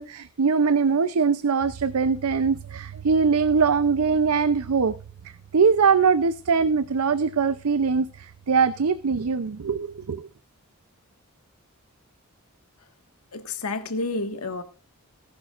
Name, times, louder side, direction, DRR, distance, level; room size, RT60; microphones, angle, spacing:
voice 1, 0.0-4.9 5.5-10.3, right 5 dB, 75° right, 0.6 m, -22 dB
voice 2, 13.3-14.6, left 3 dB, 90° left, 1.6 m, -30 dB
18.5 x 11.0 x 2.5 m
head